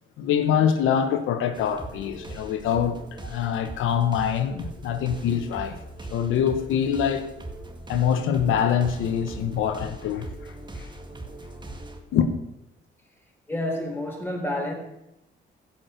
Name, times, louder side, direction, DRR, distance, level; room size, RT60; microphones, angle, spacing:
voice 1, 0.2-5.8 6.1-7.3 7.9-10.9 12.1-12.3, left 8 dB, 85° left, 1.1 m, -24 dB
sound 1, 1.5-12.0, right 2 dB, 20° right, 1.9 m, -40 dB
voice 2, 13.5-14.7, left 1 dB, 10° left, 3.9 m, -29 dB
16.0 x 6.0 x 6.7 m
cardioid pair, 90°, 20 cm